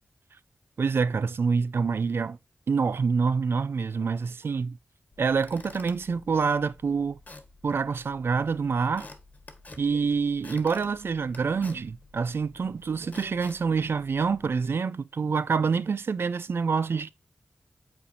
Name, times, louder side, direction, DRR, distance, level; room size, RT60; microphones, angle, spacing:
voice 1, 0.8-2.4 2.7-4.8 5.2-7.2 7.6-9.1 9.8-17.1, right 5 dB, 70° right, 0.4 m, -26 dB
Squeak / Wood, 5.1-14.7, left 2 dB, 40° left, 1.3 m, -50 dB
8.5 x 4.3 x 2.6 m
wide cardioid pair, 75°, 4 cm